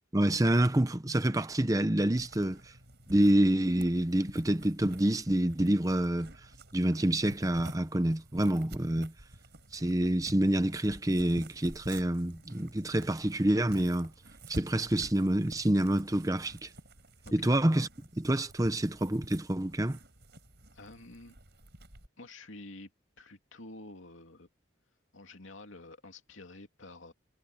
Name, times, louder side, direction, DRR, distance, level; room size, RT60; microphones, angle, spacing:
voice 1, 0.1-2.7 3.1-6.3 6.7-9.1 9.7-14.1 14.5-16.7 17.3-20.0, right 1 dB, 15° right, 0.7 m, -27 dB
sound 1, 2.2-22.1, right 1 dB, 55° right, 6.7 m, -49 dB
voice 2, 20.7-21.4 22.2-22.9 23.2-24.5 25.1-27.1, left 2 dB, 80° left, 2.7 m, -49 dB
head